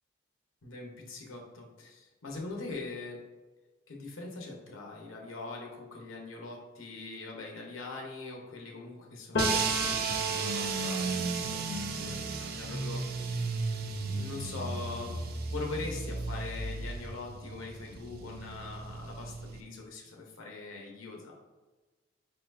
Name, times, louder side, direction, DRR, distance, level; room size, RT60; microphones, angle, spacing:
voice 1, 0.6-3.2 3.9-13.5 14.0-15.2 15.5-21.4, left 3 dB, 80° left, 0 dB, 1.0 m, -42 dB
Piano, 9.3-17.0 17.3-18.9, right 1 dB, 55° left, 0.6 m, -38 dB
sound 1, 9.4-19.6, right 4 dB, 50° right, 0.4 m, -35 dB
4.6 x 4.3 x 2.6 m, 1.2 s
head